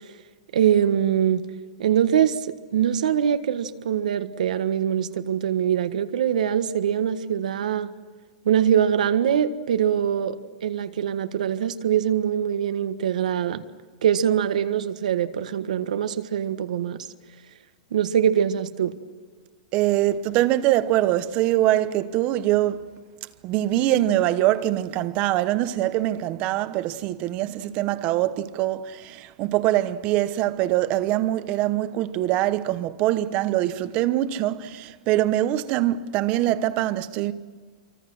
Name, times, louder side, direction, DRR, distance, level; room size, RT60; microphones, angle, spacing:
voice 1, 0.5-1.5 1.8-7.9 8.4-13.6 14.0-17.0 17.9-18.9, right 9 dB, 80° right, 1.5 m, -23 dB
voice 2, 19.7-22.9 23.4-37.3, right 14 dB, 30° right, 1.0 m, -23 dB
28.0 x 24.5 x 6.3 m
supercardioid pair, 160°, 4 cm